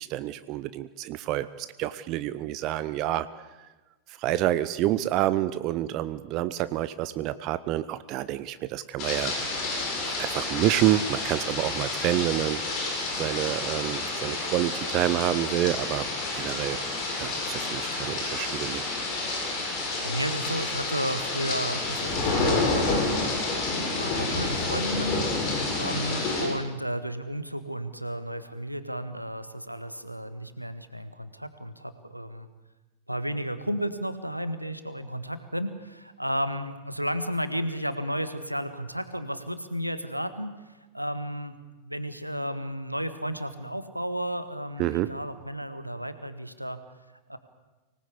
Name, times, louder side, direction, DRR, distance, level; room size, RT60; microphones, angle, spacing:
voice 1, 0.0-3.3 4.2-9.3 10.0-12.6 13.1-16.1 16.3-16.8 17.2-18.8 44.8-45.1, right 14 dB, 40° right, 15 dB, 0.8 m, -28 dB
sound 1, 9.0-26.5, left 3 dB, 40° left, 7.9 m, -29 dB
voice 2, 20.0-23.3 24.0-32.5 33.1-40.5 40.9-41.5 41.8-46.8 47.3-47.4, equal, 90° right, 11 dB, 1.5 m, -33 dB
25.0 x 19.0 x 8.3 m, 1.2 s
figure-of-eight pair, 90°, 0 cm